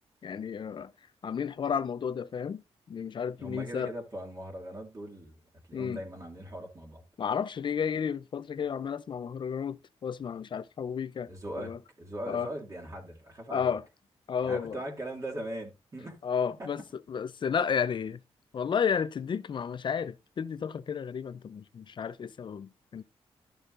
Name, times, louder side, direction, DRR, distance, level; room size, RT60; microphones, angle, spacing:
voice 1, 0.2-0.9 1.2-2.6 2.9-3.9 5.7-6.0 7.2-11.3 11.5-11.8 12.3-12.5 13.5-13.8 14.3-14.8 16.2-16.8 17.1-18.2 18.5-23.0, left 7 dB, 50° left, 0.6 m, -32 dB
voice 2, 3.4-5.4 5.7-7.0 11.3-13.7 14.4-16.2 16.6-16.7, right 1 dB, 30° right, 2.5 m, -40 dB
12.0 x 6.6 x 2.6 m
cardioid pair, 100°, 11 cm